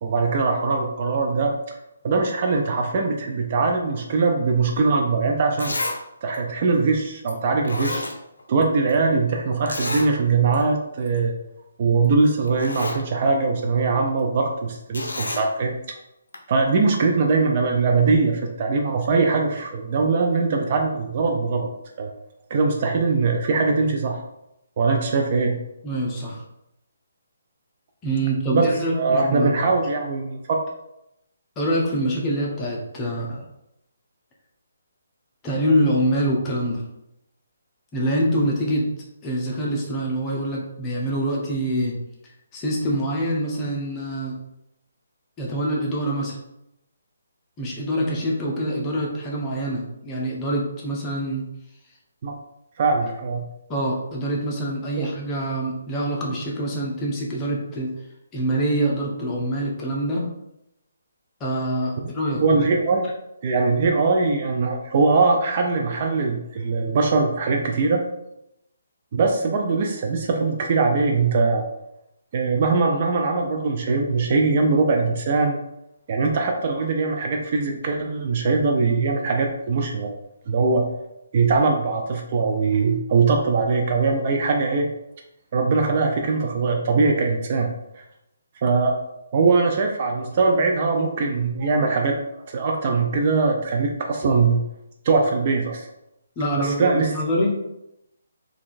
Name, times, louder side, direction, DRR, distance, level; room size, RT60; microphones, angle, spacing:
voice 1, 0.0-1.5 2.0-5.8 6.2-8.0 8.5-11.3 11.8-15.7 16.5-21.7 22.0-22.1 22.5-24.2 24.8-25.6 28.5-30.6 52.2-52.3 52.8-53.4 55.0-55.1 62.4-63.1 63.4-68.0 69.1-71.7 72.3-75.6 76.1-80.1 80.5-80.9 81.3-84.9 85.5-88.0 88.6-89.0 89.3-94.6 95.0-95.9 96.6-97.1, right 4 dB, 40° right, 2 dB, 0.4 m, -21 dB
Zipper (clothing), 5.0-5.1 5.6-6.0 6.3-6.4 7.3-7.4 7.6-8.6 8.9-9.0 9.7-10.1 10.5-10.6 11.0-11.2 12.0-12.1 12.4-13.0 14.9-15.5 16.3-16.4, left 2 dB, 70° left, 0.5 m, -29 dB
voice 2, 25.8-26.4 28.0-29.6 31.6-33.4 35.4-36.8 37.9-38.9 39.2-42.0 42.5-44.3 45.4-46.4 47.6-51.4 53.7-57.9 58.3-60.3 61.4-62.4 96.4-97.5, right 1 dB, 20° left, -3 dB, 0.7 m, -25 dB
3.5 x 2.3 x 2.5 m, 0.85 s
figure-of-eight pair, 140°, 0 cm